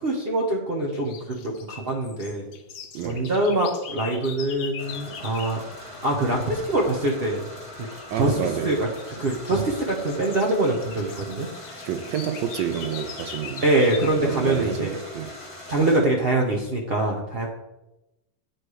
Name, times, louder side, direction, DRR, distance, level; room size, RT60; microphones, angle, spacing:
voice 1, 0.0-2.5 3.0-5.6 6.0-7.5 8.1-11.9 13.6-15.0 15.7-17.5, right 2 dB, 55° right, 0 dB, 0.6 m, -24 dB
sound 1, 0.9-5.6 7.8-8.2 8.7-14.2, left 7 dB, 80° left, 1.3 m, -41 dB
voice 2, 2.9-3.3 8.1-8.8 11.8-13.7 14.2-15.3, right 9 dB, 80° right, 8 dB, 1.2 m, -29 dB
sound 2, 4.8-16.0, left 1 dB, 20° left, 1.5 m, -41 dB
9.0 x 3.1 x 4.7 m, 0.99 s
omnidirectional pair, 1.9 m